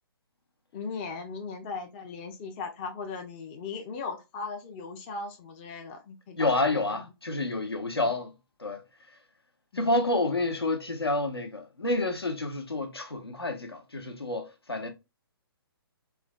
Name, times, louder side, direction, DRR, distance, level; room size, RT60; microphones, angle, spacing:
voice 1, 0.7-7.0 8.0-8.1 9.7-10.0, left 4 dB, 25° left, 0.5 m, -38 dB
voice 2, 6.4-8.3 8.6-8.8 9.7-14.9, left 2 dB, 80° left, 0.9 m, -29 dB
3.2 x 2.3 x 2.2 m
figure-of-eight pair, 130°, 13 cm